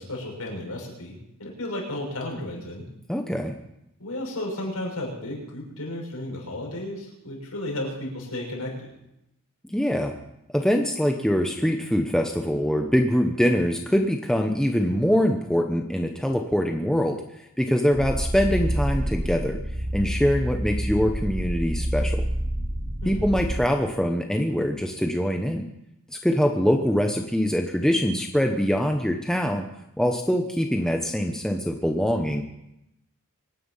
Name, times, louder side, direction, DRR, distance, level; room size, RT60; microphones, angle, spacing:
voice 1, 0.0-2.8 4.0-8.9 23.0-23.2, left 1 dB, 85° left, -1 dB, 6.3 m, -33 dB
voice 2, 3.1-3.5 9.7-10.1 10.5-19.6 19.9-22.2 23.0-25.7 26.1-29.6 30.0-32.4, equal, 5° left, 3 dB, 0.9 m, -23 dB
sound 1, 17.9-23.6, right 1 dB, 55° right, 5.6 m, -28 dB
24.5 x 10.0 x 5.6 m, 0.85 s
head